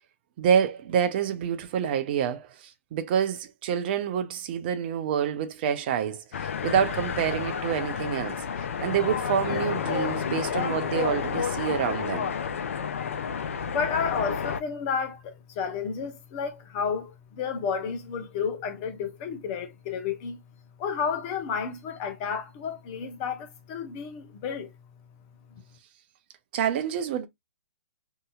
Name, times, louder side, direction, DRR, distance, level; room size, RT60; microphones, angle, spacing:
voice 1, 0.4-8.4 8.8-12.3 26.5-27.3, right 8 dB, 40° right, 0.6 m, -27 dB
sound 1, 6.3-14.6, left 7 dB, 60° left, 0.4 m, -30 dB
voice 2, 13.6-20.4 20.8-24.7, left 6 dB, 35° left, 0.8 m, -31 dB
2.8 x 2.7 x 2.3 m
figure-of-eight pair, 125°, 8 cm